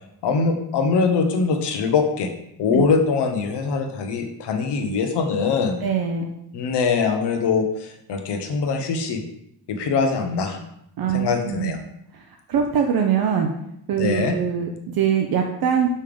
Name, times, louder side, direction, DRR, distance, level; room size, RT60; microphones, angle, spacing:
voice 1, 0.2-2.3 2.6-5.8 6.5-9.2 9.7-10.6 11.1-11.8 14.0-14.3, left 5 dB, 80° left, 5 dB, 1.0 m, -22 dB
voice 2, 5.8-6.3 11.0-11.7 12.5-13.5 13.9-15.9, right 7 dB, 60° right, 3 dB, 0.7 m, -22 dB
5.5 x 5.0 x 3.5 m, 0.75 s
cardioid pair, 150°, 41 cm